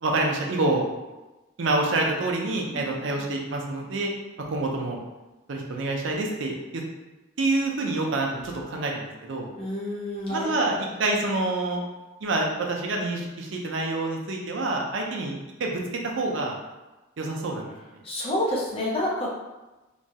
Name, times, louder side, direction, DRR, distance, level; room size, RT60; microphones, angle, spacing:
voice 1, 0.0-0.9 1.6-4.1 4.5-5.0 5.5-6.8 7.4-9.5 10.3-11.8 12.2-15.3 15.6-16.6 17.2-17.7, right 2 dB, 70° right, 0 dB, 0.5 m, -27 dB
voice 2, 2.7-3.1 9.5-10.5 18.0-19.4, left 1 dB, 30° left, -4 dB, 0.6 m, -29 dB
3.0 x 2.3 x 2.7 m, 1.1 s
head